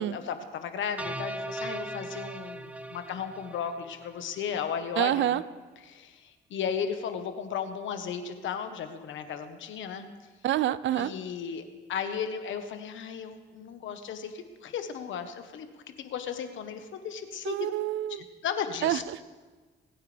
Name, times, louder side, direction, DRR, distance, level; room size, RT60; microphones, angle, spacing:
voice 1, 0.0-5.4 5.8-10.1 10.9-15.7 16.0-17.7 18.1-19.0, left 7 dB, 75° left, 8 dB, 1.3 m, -35 dB
sound 1, 1.0-4.3, right 1 dB, 5° right, 0.6 m, -38 dB
voice 2, 5.0-5.4 10.4-11.1 17.4-18.2 18.8-19.0, right 12 dB, 75° right, 17 dB, 0.6 m, -27 dB
28.0 x 9.4 x 3.5 m, 1.4 s
cardioid pair, 90°, 20 cm